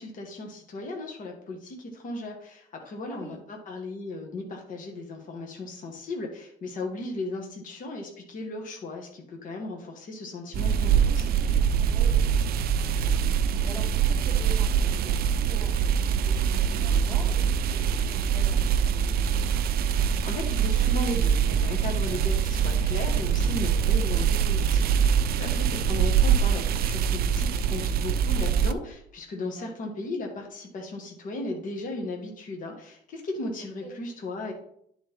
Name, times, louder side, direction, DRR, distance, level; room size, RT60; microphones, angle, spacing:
voice 1, 0.0-11.3 20.2-34.5, left 2 dB, 50° left, 2 dB, 1.8 m, -36 dB
voice 2, 3.1-3.4 11.9-13.1 13.4-19.5 25.8-25.9 29.6-29.7 33.8-33.9, equal, 10° left, -2 dB, 1.5 m, -45 dB
sound 1, 10.5-28.7, right 7 dB, 65° right, 0.6 m, -24 dB
11.0 x 4.3 x 3.7 m, 0.69 s
cardioid pair, 110°, 17 cm